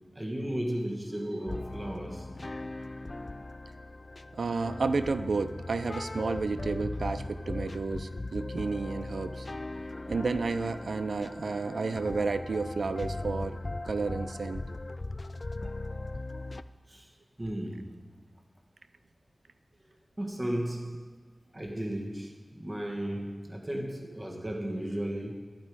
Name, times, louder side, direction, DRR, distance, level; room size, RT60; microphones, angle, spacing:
voice 1, 0.0-2.3 16.9-17.0 17.4-18.0 20.2-21.0 21.5-25.3, right 1 dB, 25° right, 1.4 m, -35 dB
sound 1, 1.5-16.6, left 2 dB, 35° left, 0.3 m, -39 dB
voice 2, 4.4-9.5 10.1-13.6 13.8-14.6, right 4 dB, 90° right, 0.4 m, -31 dB
11.5 x 8.7 x 4.7 m
wide cardioid pair, 85°, 0 cm